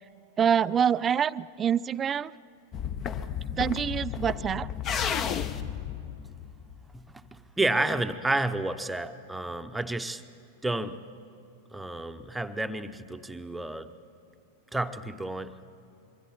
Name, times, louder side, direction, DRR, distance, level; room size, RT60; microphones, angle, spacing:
voice 1, 0.4-2.3 3.6-4.7, right 8 dB, 25° right, 18 dB, 0.4 m, -26 dB
sound 1, 2.7-7.0, left 8 dB, 30° left, 0.8 m, -32 dB
voice 2, 6.9-10.2 10.6-11.0 11.7-13.9 14.7-15.7, right 2 dB, 5° right, 9 dB, 0.9 m, -31 dB
26.5 x 23.0 x 4.4 m, 2.8 s
figure-of-eight pair, 90°, 0 cm